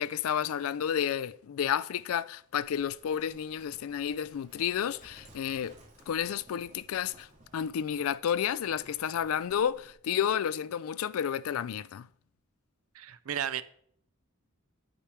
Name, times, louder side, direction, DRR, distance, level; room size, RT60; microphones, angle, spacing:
voice 1, 0.0-5.7 6.1-7.3 7.5-12.1, left 8 dB, 75° left, 0.3 m, -31 dB
Livestock farm animals working animals, 2.6-10.0, right 1 dB, 35° right, 2.0 m, -58 dB
voice 2, 12.9-13.6, right 9 dB, 75° right, 0.5 m, -33 dB
8.7 x 4.8 x 5.8 m
head